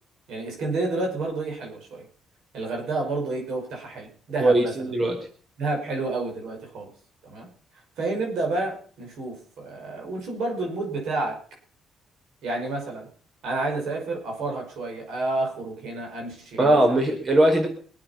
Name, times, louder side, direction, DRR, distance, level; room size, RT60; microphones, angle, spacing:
voice 1, 0.3-2.0 2.5-4.7 5.6-6.9 7.2-7.5 8.0-11.4 12.4-13.1 13.4-17.0, right 2 dB, 80° right, 1 dB, 5.7 m, -30 dB
voice 2, 4.4-5.3 16.6-17.7, right 1 dB, 40° right, 2 dB, 4.6 m, -20 dB
22.5 x 8.7 x 5.9 m, 0.43 s
cardioid pair, 90°, 0 cm